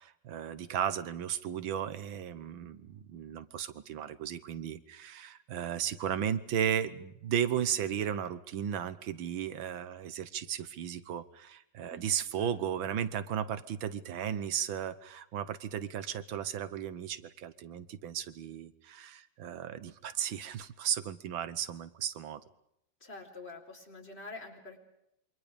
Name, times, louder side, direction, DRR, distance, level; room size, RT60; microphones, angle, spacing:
voice 1, 0.0-22.4, right 9 dB, 85° right, 14 dB, 1.8 m, -35 dB
voice 2, 11.9-12.5 23.0-24.8, left 3 dB, 30° left, 2 dB, 4.4 m, -47 dB
27.5 x 24.5 x 5.2 m, 0.79 s
omnidirectional pair, 2.1 m